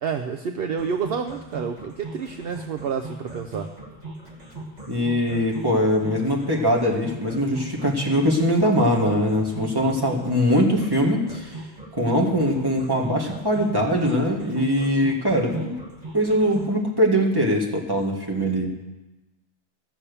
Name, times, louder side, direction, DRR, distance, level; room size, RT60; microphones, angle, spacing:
voice 1, 0.0-3.7, right 6 dB, 65° right, 5 dB, 0.9 m, -29 dB
sound 1, 0.8-16.8, right 2 dB, 40° right, 2.1 m, -39 dB
voice 2, 4.9-11.5 11.9-15.7 16.1-18.7, equal, 20° right, -1 dB, 2.0 m, -22 dB
14.5 x 7.2 x 6.9 m, 1.0 s
omnidirectional pair, 1.1 m